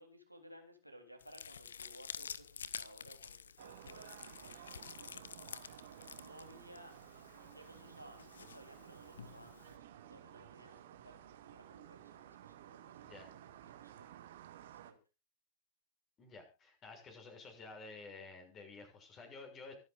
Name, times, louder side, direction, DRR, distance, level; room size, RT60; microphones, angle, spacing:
voice 1, 0.0-5.8 6.2-6.9 7.4-14.2 14.5-15.0, equal, 90° right, 3 dB, 3.7 m, -59 dB
sound 1, 1.2-9.8, left 7 dB, 70° left, 0.8 m, -50 dB
sound 2, 3.6-14.9, right 11 dB, 60° right, 2.0 m, -55 dB
voice 2, 16.2-19.7, left 3 dB, 30° left, 4 dB, 6.6 m, -52 dB
25.0 x 9.9 x 2.6 m, 0.29 s
figure-of-eight pair, 90°, 0 cm